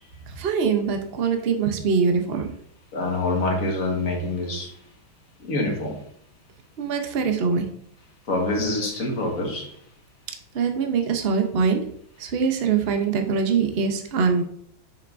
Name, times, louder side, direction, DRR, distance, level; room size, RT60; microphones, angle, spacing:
voice 1, 0.3-2.5 6.8-7.7 10.5-11.8 12.2-14.4, right 5 dB, 55° right, 5 dB, 0.7 m, -23 dB
voice 2, 2.9-4.8 5.4-6.0 8.3-9.7, left 2 dB, 45° left, 1 dB, 1.7 m, -26 dB
7.7 x 6.5 x 2.6 m, 0.64 s
omnidirectional pair, 2.2 m